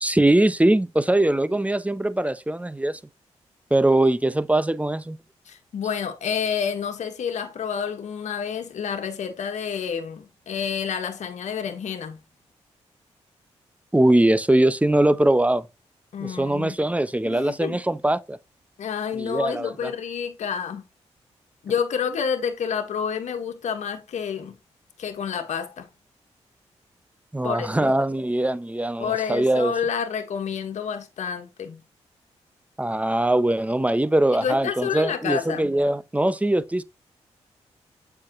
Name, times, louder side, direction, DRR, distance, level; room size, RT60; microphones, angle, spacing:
voice 1, 0.0-3.0 3.7-5.2 13.9-15.7 16.2-18.4 19.2-19.9 27.3-29.7 32.8-36.8, right 1 dB, 10° right, 0.7 m, -21 dB
voice 2, 5.4-12.2 16.1-16.8 17.2-17.8 18.8-20.8 21.6-24.6 25.0-25.9 27.4-27.8 29.0-31.8 34.3-35.7, left 7 dB, 75° left, 1.5 m, -29 dB
7.6 x 5.9 x 3.0 m
supercardioid pair, 50°, 12 cm